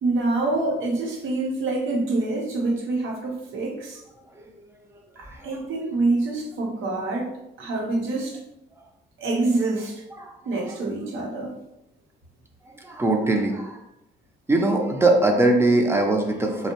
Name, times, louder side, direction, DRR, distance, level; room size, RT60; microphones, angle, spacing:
voice 1, 0.0-4.0 5.2-7.3 7.6-8.4 9.2-10.0 10.4-11.5, right 2 dB, 85° right, -2 dB, 0.8 m, -26 dB
voice 2, 12.8-13.8 14.5-16.7, right 2 dB, 10° right, 2 dB, 0.4 m, -21 dB
2.6 x 2.1 x 2.8 m, 0.86 s
cardioid pair, 90°, 20 cm